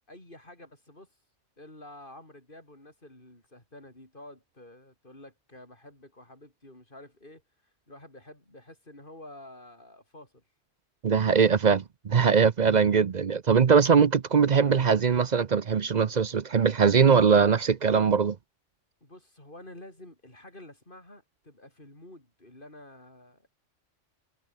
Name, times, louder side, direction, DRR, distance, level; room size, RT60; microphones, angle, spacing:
voice 1, 0.1-1.1 1.6-7.4 7.9-10.4 19.0-23.5, left 1 dB, 45° left, 6.8 m, -49 dB
voice 2, 11.0-18.4, right 6 dB, 45° right, 0.7 m, -21 dB
omnidirectional pair, 1.3 m